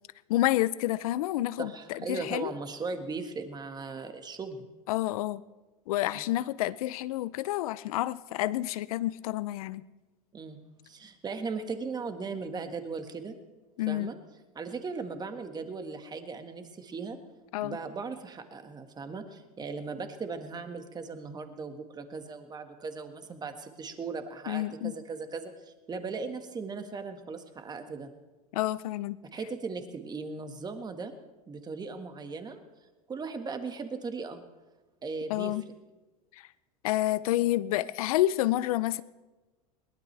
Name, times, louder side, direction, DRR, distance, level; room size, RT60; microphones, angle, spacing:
voice 1, 0.3-2.5 4.9-5.4 5.9-9.8 13.8-14.1 17.5-17.8 24.5-24.9 28.5-29.2 35.3-35.6 36.8-39.0, left 15 dB, 70° left, 18 dB, 0.7 m, -29 dB
voice 2, 1.6-4.7 6.1-6.3 10.3-10.6 10.8-13.4 13.9-14.2 14.6-17.2 17.6-28.1 29.3-31.1 31.5-32.6 33.1-34.4 35.0-35.5, right 4 dB, 20° right, 7 dB, 1.8 m, -38 dB
22.0 x 19.0 x 3.4 m, 1.2 s
hypercardioid pair, 105°, 19 cm